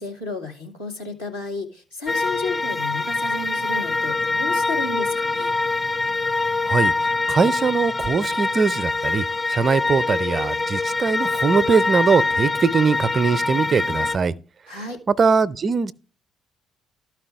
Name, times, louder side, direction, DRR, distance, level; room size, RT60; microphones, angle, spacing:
voice 1, 0.0-5.5 14.7-15.0, left 3 dB, 90° left, 1.9 m, -32 dB
sound 1, 2.1-14.2, left 3 dB, 20° left, 0.3 m, -24 dB
voice 2, 6.6-6.9 7.3-14.3 15.1-15.9, right 5 dB, 40° right, 0.5 m, -21 dB
12.5 x 4.8 x 4.6 m
figure-of-eight pair, 45°, 0 cm